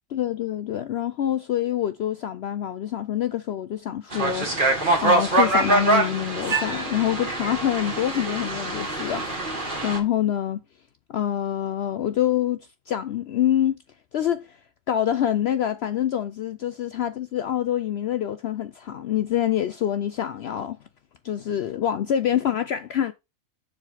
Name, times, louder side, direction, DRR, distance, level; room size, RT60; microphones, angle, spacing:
voice 1, 0.1-4.6 5.0-9.2 9.8-10.6 11.1-13.8 14.1-14.6 14.9-20.8 21.2-23.1, left 10 dB, 65° left, 0.7 m, -26 dB
sound 1, 4.1-10.0, right 2 dB, 40° right, 1.8 m, -24 dB
7.2 x 3.8 x 5.6 m
omnidirectional pair, 1.4 m